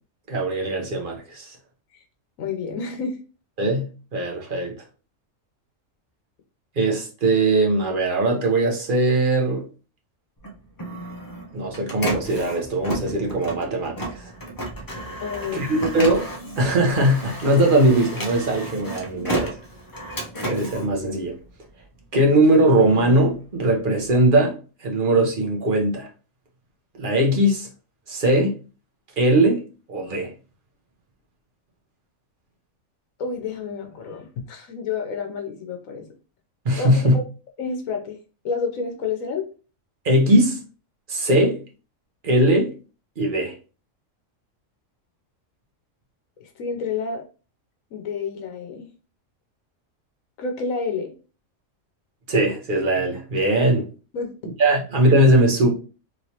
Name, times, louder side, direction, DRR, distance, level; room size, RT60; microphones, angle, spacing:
voice 1, 0.3-1.6 3.6-4.7 6.8-9.6 11.5-14.0 14.2-14.3 15.5-16.3 16.6-19.5 20.4-21.4 22.1-24.6 24.8-26.1 27.0-27.7 28.1-28.6 29.2-29.6 29.9-30.3 36.6-37.2 40.0-40.6 41.1-41.6 42.2-42.7 43.2-43.5 52.3-53.9 54.6-55.7, right 1 dB, 45° right, 0.9 m, -20 dB
voice 2, 2.4-3.2 15.2-15.9 33.2-36.1 36.7-36.9 37.1-37.2 37.6-38.2 38.4-39.5 46.4-47.2 47.9-48.9 50.4-51.1 54.1-54.3, left 5 dB, 80° left, 1.1 m, -29 dB
Printer, 10.4-21.8 22.3-24.1, right 1 dB, 30° left, 0.4 m, -33 dB
3.1 x 3.0 x 2.8 m
omnidirectional pair, 1.4 m